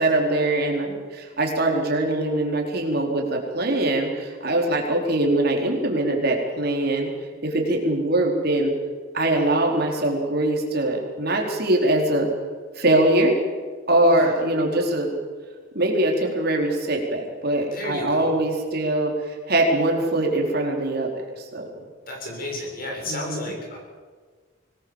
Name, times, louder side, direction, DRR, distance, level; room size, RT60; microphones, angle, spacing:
voice 1, 0.0-7.1 7.4-8.7 9.1-12.3 12.8-13.4 13.9-15.1 15.7-21.1 21.4-21.7 23.1-23.5, right 1 dB, 50° right, 1 dB, 4.5 m, -22 dB
voice 2, 14.0-14.6 17.7-18.3 22.1-23.8, left 1 dB, 45° left, 0 dB, 7.2 m, -33 dB
24.5 x 19.5 x 7.3 m, 1.5 s
head